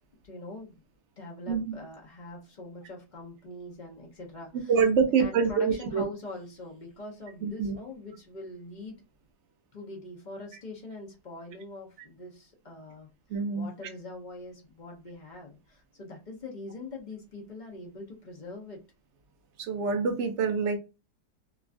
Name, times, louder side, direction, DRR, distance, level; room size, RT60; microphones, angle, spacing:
voice 1, 0.2-0.8 1.2-4.7 5.0-9.0 9.7-13.1 13.5-18.8, left 2 dB, 50° left, -1 dB, 0.5 m, -43 dB
voice 2, 1.5-1.8 4.7-6.0 7.4-7.8 13.3-13.7 19.6-20.8, right 5 dB, 70° right, 5 dB, 0.6 m, -26 dB
3.0 x 2.3 x 2.4 m, 0.28 s
omnidirectional pair, 1.7 m